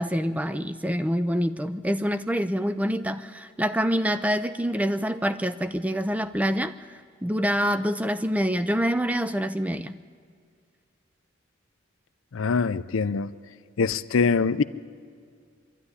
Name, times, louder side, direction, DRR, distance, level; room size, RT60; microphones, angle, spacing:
voice 1, 0.0-10.0, equal, 5° right, 12 dB, 0.4 m, -26 dB
voice 2, 12.3-13.3 13.8-14.6, left 5 dB, 80° left, 15 dB, 0.5 m, -23 dB
23.5 x 12.5 x 9.8 m, 2.1 s
head